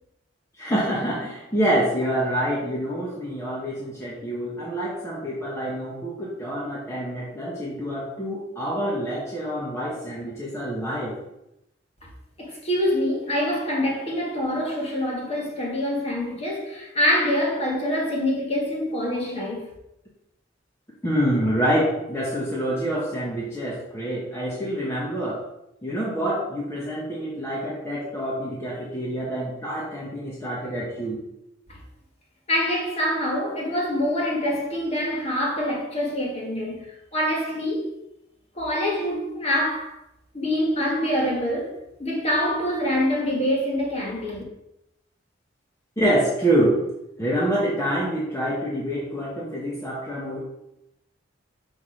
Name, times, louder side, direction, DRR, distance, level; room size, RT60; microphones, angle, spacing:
voice 1, 0.6-11.2 21.0-25.4 25.8-31.2 46.0-46.8 47.2-50.4, right 1 dB, 15° left, 1.0 m, -26 dB
voice 2, 12.4-19.7 31.7-31.8 32.5-37.9 38.5-40.0 40.3-41.7 42.0-44.4, left 1 dB, 35° left, 1.5 m, -25 dB
5.8 x 3.5 x 4.8 m
head